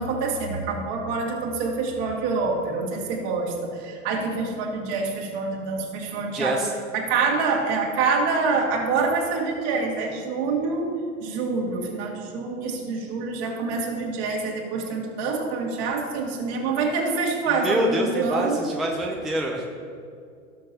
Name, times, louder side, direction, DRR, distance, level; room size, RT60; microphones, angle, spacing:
voice 1, 0.0-6.6 6.9-10.9 11.2-18.6, right 4 dB, 50° right, -1 dB, 2.3 m, -26 dB
voice 2, 6.3-6.7 17.5-19.7, equal, ahead, 0 dB, 0.5 m, -26 dB
17.5 x 6.5 x 2.9 m, 2.4 s
hypercardioid pair, 95°, 43 cm